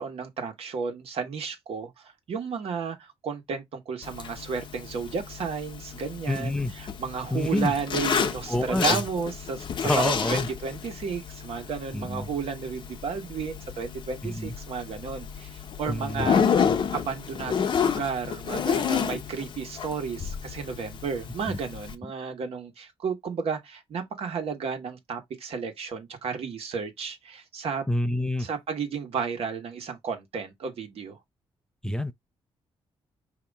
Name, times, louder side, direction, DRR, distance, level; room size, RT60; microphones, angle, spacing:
voice 1, 0.0-16.6 16.9-27.8 28.4-31.2, right 5 dB, 65° right, 1.4 m, -33 dB
Zipper (clothing), 4.0-21.9, left 7 dB, 50° left, 0.8 m, -30 dB
voice 2, 6.3-6.7 7.3-7.7 8.5-9.0 9.8-10.5 11.9-12.3 14.2-14.5 15.9-16.3 21.5-21.6 27.9-28.5 31.8-32.1, left 1 dB, 5° left, 0.4 m, -27 dB
5.3 x 2.8 x 3.5 m
cardioid pair, 120°, 11 cm